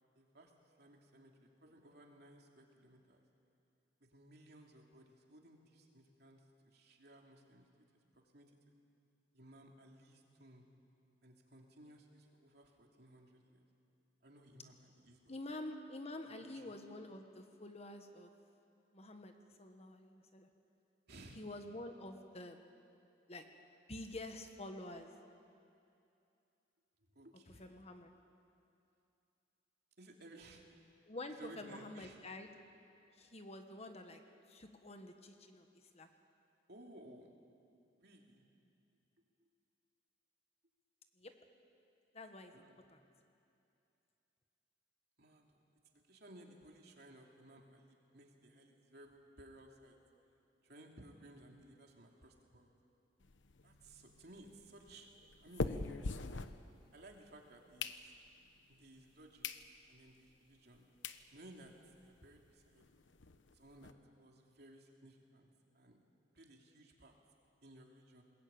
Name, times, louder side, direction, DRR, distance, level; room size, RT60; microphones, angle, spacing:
voice 1, 0.1-3.2 4.0-7.7 8.1-8.5 9.3-10.7 11.2-13.6 14.2-15.3 16.3-16.7 21.1-21.4 27.0-27.8 30.0-30.7 31.3-32.2 36.7-37.3 38.0-38.4 39.4-39.5 42.5-43.0 45.2-45.6 45.9-50.0 50.6-52.7 53.6-55.1 55.4-56.1 56.9-57.9 58.7-59.5 59.9-60.9 61.3-61.7 62.0-62.8 63.5-65.5 65.7-66.0 66.3-67.2 67.6-68.2, right 1 dB, 60° right, 1 dB, 2.9 m, -59 dB
voice 2, 15.3-18.3 18.9-20.5 21.4-22.6 23.3-23.4 23.9-25.1 27.5-28.1 31.0-32.5 33.1-34.2 34.5-35.7 35.9-36.1 41.2-41.3 42.1-43.0, left 2 dB, 35° left, 6 dB, 1.4 m, -48 dB
sound 1, 53.2-57.1 57.5-58.5 59.0-59.1 59.4-59.6 60.1-60.2 60.7-60.8 61.0-61.2 61.7-61.8 61.9-62.1 62.3-62.4 62.8-63.9, left 3 dB, 85° left, 0.9 m, -43 dB
21.5 x 20.5 x 8.9 m, 2.7 s
head